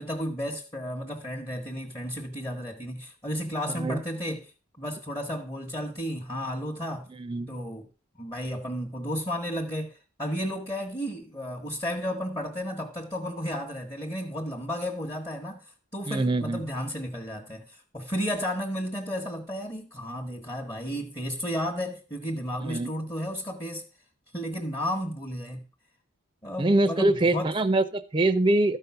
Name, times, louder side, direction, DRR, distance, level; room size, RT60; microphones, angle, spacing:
voice 1, 0.0-4.5 4.8-7.1 7.5-7.9 8.2-23.9 24.3-25.6 26.4-27.5, equal, 20° left, 1.1 m, -33 dB
voice 2, 3.7-4.0 7.1-7.5 16.1-16.6 22.6-22.9 26.6-28.8, right 2 dB, 25° right, 0.6 m, -24 dB
13.0 x 5.4 x 5.7 m
head